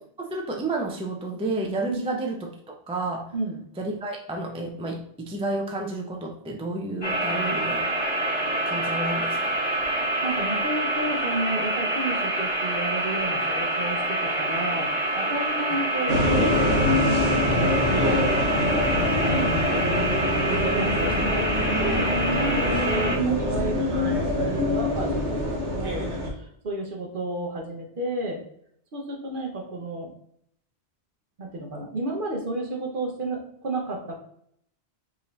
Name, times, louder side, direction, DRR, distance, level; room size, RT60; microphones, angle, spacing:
voice 1, 0.2-3.3 3.8-7.9 8.7-9.6 18.0-18.3 20.5-20.7, right 2 dB, 10° right, 0 dB, 0.3 m, -31 dB
sound 1, 7.0-23.1, right 1 dB, 20° left, 1.3 m, -27 dB
voice 2, 10.2-20.1 20.6-28.4 28.9-30.1 31.4-34.2, right 2 dB, 50° right, 1 dB, 0.9 m, -32 dB
sound 2, 16.1-26.3, left 1 dB, 80° right, 1.2 m, -24 dB
4.9 x 2.8 x 3.1 m, 0.70 s
omnidirectional pair, 1.2 m